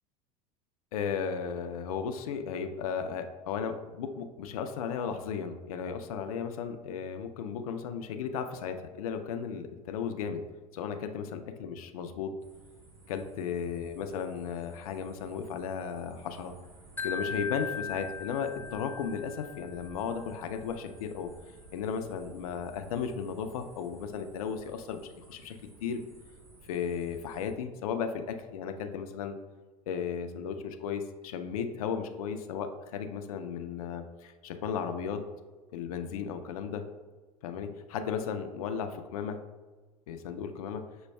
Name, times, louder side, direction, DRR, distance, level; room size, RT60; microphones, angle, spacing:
voice 1, 0.9-10.4 10.7-12.3 13.1-16.5 17.0-21.3 21.7-26.0 26.7-29.4 29.9-35.3 35.7-36.9 37.4-39.4 40.1-40.9, left 7 dB, 65° left, 7 dB, 0.4 m, -35 dB
sound 1, 12.4-27.5, right 3 dB, 60° right, 1.2 m, -55 dB
Wind chime, 17.0-20.1, left 5 dB, 10° left, 0.4 m, -38 dB
6.1 x 2.2 x 2.2 m, 1.3 s
figure-of-eight pair, 75°, 20 cm